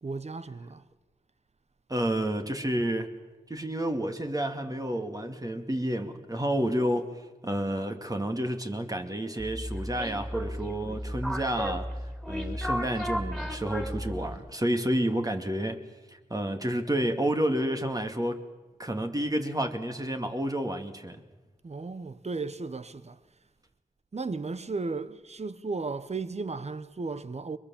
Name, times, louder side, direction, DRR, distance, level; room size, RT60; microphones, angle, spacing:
voice 1, 0.0-0.8 21.6-23.2 24.1-27.6, right 3 dB, 45° right, 1.1 m, -35 dB
voice 2, 1.9-3.1 3.5-7.1 7.4-11.9 12.3-15.8 16.3-18.4 18.8-21.2, right 1 dB, 25° right, 2.4 m, -30 dB
sound 1, 9.4-14.5, equal, ahead, 4.3 m, -34 dB
22.0 x 21.5 x 7.3 m
cardioid pair, 40°, 15 cm